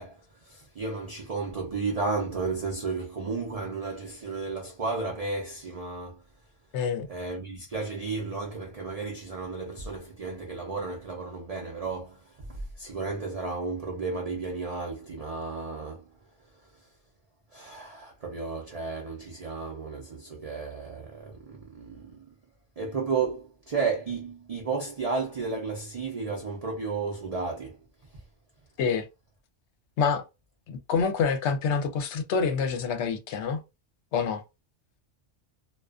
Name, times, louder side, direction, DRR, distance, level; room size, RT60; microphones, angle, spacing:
voice 1, 0.0-6.2 7.1-16.2 17.5-22.4 22.8-27.8, right 4 dB, 50° right, 0.4 m, -33 dB
voice 2, 6.7-7.1 28.8-29.1 30.0-30.2 30.7-33.6 34.1-34.4, left 6 dB, 70° left, 0.8 m, -27 dB
2.4 x 2.3 x 2.3 m
omnidirectional pair, 1.3 m